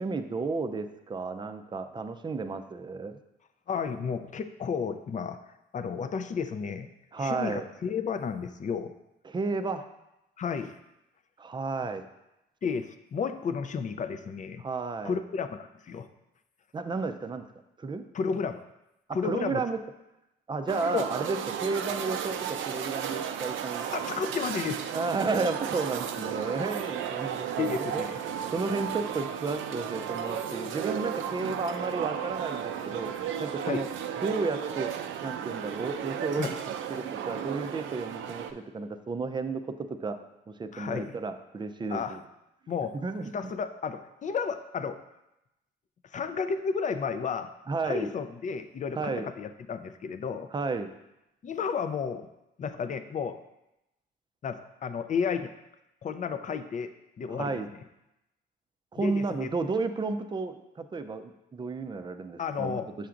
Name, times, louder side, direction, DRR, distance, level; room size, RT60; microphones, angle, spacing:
voice 1, 0.0-3.2 7.1-7.6 9.3-9.8 11.4-12.0 14.6-15.2 16.7-17.5 17.8-18.0 19.2-19.8 20.5-23.9 24.9-28.2 28.5-33.1 33.4-33.9 34.2-34.9 35.2-36.6 36.9-40.2 40.5-42.2 42.9-43.3 47.7-48.1 49.0-49.3 50.5-50.9 57.4-57.7 58.9-62.8, right 4 dB, 25° right, 8 dB, 0.5 m, -32 dB
voice 2, 3.7-5.4 5.7-6.9 7.2-8.9 10.4-10.8 12.6-14.6 15.0-16.1 18.1-18.6 19.1-19.7 20.9-21.1 23.8-24.9 27.6-28.2 33.7-33.9 36.4-36.5 40.7-41.2 41.9-42.2 42.7-43.0 43.3-45.0 46.1-47.5 47.8-50.5 51.4-52.3 52.6-53.4 54.4-55.5 56.0-56.9 57.2-57.8 59.0-59.5 62.4-62.9, left 6 dB, 40° left, 10 dB, 0.5 m, -32 dB
sound 1, 20.7-38.5, right 9 dB, 80° right, 0.5 m, -34 dB
6.8 x 5.7 x 2.5 m, 0.90 s
cardioid pair, 90°, 20 cm